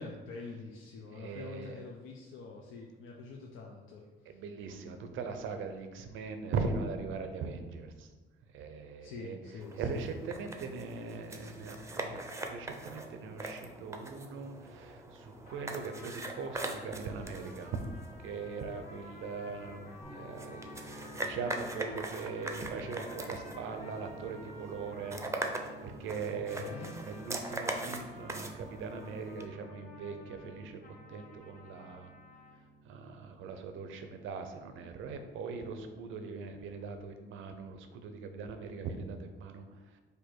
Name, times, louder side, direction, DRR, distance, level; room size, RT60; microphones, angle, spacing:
voice 1, 0.0-4.4 9.0-10.1 26.3-27.0, left 4 dB, 85° left, -1 dB, 0.5 m, -46 dB
voice 2, 1.2-1.7 4.3-7.9 8.5-9.4 9.8-12.2 12.5-17.8 18.2-19.8 20.1-21.0 21.2-25.2 25.8-26.7 27.1-28.5 28.8-30.8 31.1-32.1 32.9-39.6, right 4 dB, 80° right, 7 dB, 0.6 m, -40 dB
sound 1, 9.6-29.5, right 2 dB, 15° right, 0.5 m, -42 dB
sound 2, 15.4-32.6, left 2 dB, 45° left, 1.3 m, -54 dB
sound 3, 20.0-35.9, right 1 dB, 15° left, 1.2 m, -53 dB
4.4 x 2.6 x 4.5 m, 1.3 s
cardioid pair, 90°, 20 cm